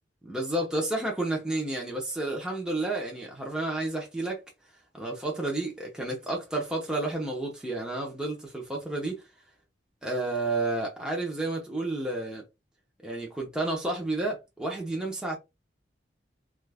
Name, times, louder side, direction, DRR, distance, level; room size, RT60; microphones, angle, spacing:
voice 1, 0.2-4.4 4.9-9.2 10.0-12.4 13.0-15.4, right 2 dB, 5° right, 0.7 m, -31 dB
3.1 x 2.4 x 3.3 m
head